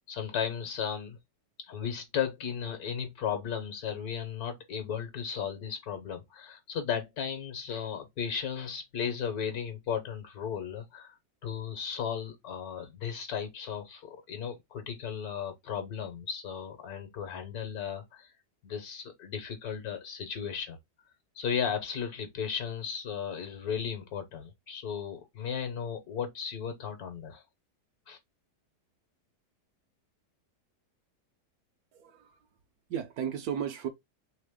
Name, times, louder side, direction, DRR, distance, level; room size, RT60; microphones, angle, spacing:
voice 1, 0.1-1.2 1.6-11.1 11.4-18.3 18.6-20.8 21.4-27.4 28.1-28.2, left 7 dB, 65° left, 1.3 m, -35 dB
voice 2, 31.9-32.4 32.9-33.9, right 8 dB, 70° right, 1.1 m, -34 dB
3.5 x 3.3 x 3.5 m
omnidirectional pair, 1.8 m